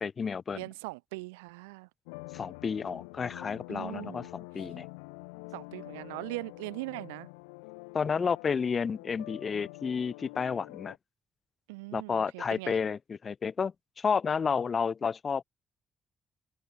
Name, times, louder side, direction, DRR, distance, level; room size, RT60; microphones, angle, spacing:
voice 1, 0.0-0.6 2.3-4.9 7.9-11.0 11.9-15.4, left 6 dB, 50° left, 1.6 m, -31 dB
voice 2, 0.5-1.9 3.7-4.3 5.5-7.3 11.7-12.8, right 25 dB, 90° right, 2.0 m, -40 dB
sound 1, 2.1-11.0, left 32 dB, 90° left, 4.2 m, -46 dB
hypercardioid pair, 45°, 0 cm